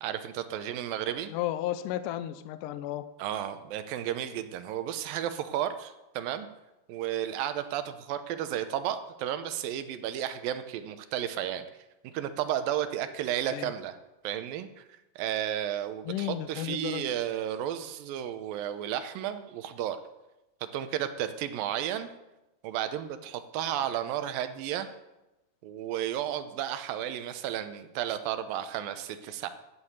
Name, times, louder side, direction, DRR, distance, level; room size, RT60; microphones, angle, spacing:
voice 1, 0.0-1.3 3.2-6.5 6.9-11.6 12.0-14.0 14.2-14.9 15.2-20.0 20.7-22.1 22.6-24.9 25.6-29.5, right 11 dB, 80° right, 10 dB, 2.6 m, -33 dB
voice 2, 1.3-3.1 13.5-13.7 16.1-17.0, left 13 dB, 80° left, 13 dB, 2.1 m, -33 dB
11.0 x 8.8 x 8.0 m, 0.97 s
omnidirectional pair, 4.1 m